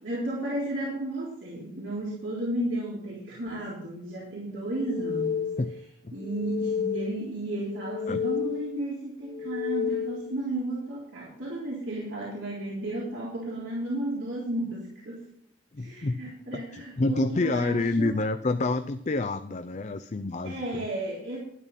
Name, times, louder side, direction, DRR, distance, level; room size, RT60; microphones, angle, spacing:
voice 1, 0.0-5.5 6.1-15.2 15.8-18.1 20.4-21.4, right 1 dB, 85° right, -6 dB, 3.7 m, -33 dB
sound 1, 4.7-5.8 6.2-7.3 7.7-8.8 9.2-10.4, left 7 dB, 25° left, 2.7 m, -31 dB
voice 2, 15.7-16.2 16.5-20.9, left 2 dB, 40° left, 9 dB, 0.5 m, -28 dB
12.5 x 10.5 x 4.2 m, 0.72 s
head